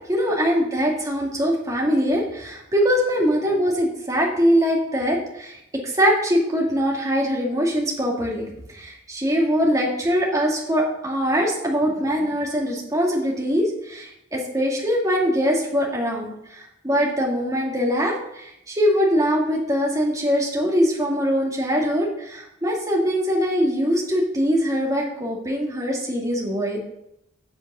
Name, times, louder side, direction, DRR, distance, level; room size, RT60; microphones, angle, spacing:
voice 1, 0.1-5.6 5.8-26.8, equal, 15° right, -2 dB, 2.2 m, -22 dB
8.2 x 7.2 x 6.2 m, 0.81 s
head